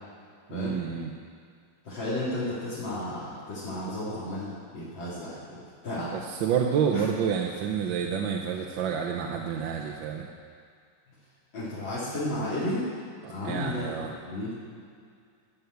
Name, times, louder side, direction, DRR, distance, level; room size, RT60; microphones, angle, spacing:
voice 1, 0.5-1.1 6.0-10.3 13.2-14.1, right 7 dB, 75° right, 1 dB, 1.5 m, -29 dB
voice 2, 1.8-6.1 6.9-7.0 11.5-12.9 13.3-14.5, left 1 dB, 70° left, -11 dB, 3.3 m, -33 dB
12.5 x 7.0 x 7.9 m, 2.2 s
omnidirectional pair, 2.2 m